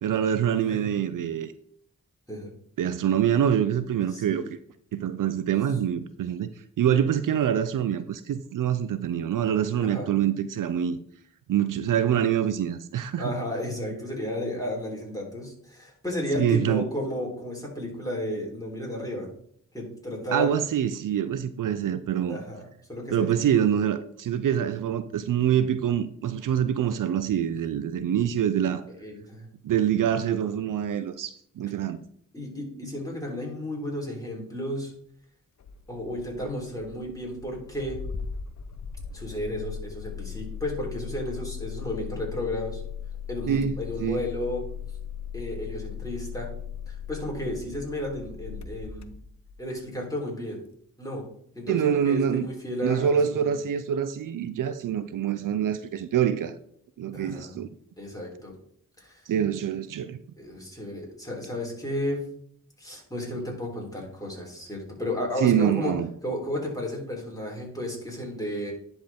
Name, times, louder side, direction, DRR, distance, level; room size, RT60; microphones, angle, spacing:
voice 1, 0.0-1.5 2.8-4.4 4.9-6.5 6.8-11.0 11.5-13.3 16.4-16.8 20.3-22.4 23.1-28.9 29.6-32.0 43.5-44.2 51.7-52.5 52.8-56.5 57.0-57.7 59.3-60.2 65.4-66.1, right 9 dB, 70° right, 0.5 m, -25 dB
voice 2, 13.2-19.3 19.7-20.5 22.3-23.3 29.0-29.5 32.3-34.9 35.9-38.0 39.1-42.8 43.3-44.6 45.3-46.5 46.9-49.1 49.6-50.6 51.0-51.2 51.6-53.6 57.1-57.5 58.0-58.6 59.0-59.2 60.4-62.2 62.8-66.0 66.2-68.7, left 1 dB, 10° left, 3.5 m, -33 dB
Engine starting, 35.6-49.7, left 7 dB, 55° left, 0.6 m, -38 dB
10.5 x 4.5 x 3.5 m
cardioid pair, 50°, 33 cm